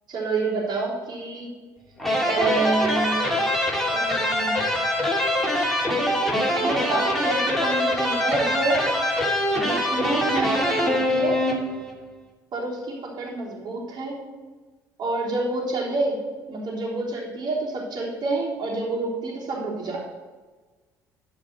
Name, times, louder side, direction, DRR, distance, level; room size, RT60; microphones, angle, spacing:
voice 1, 0.1-1.5 2.2-3.5 3.9-4.6 6.6-8.8 9.5-11.4 12.5-14.2 15.0-16.2 16.5-20.1, right 3 dB, 50° right, -4 dB, 3.6 m, -28 dB
sound 1, 2.0-12.0, left 1 dB, ahead, 2.5 m, -24 dB
12.0 x 5.1 x 6.2 m, 1.3 s
figure-of-eight pair, 55°, 9 cm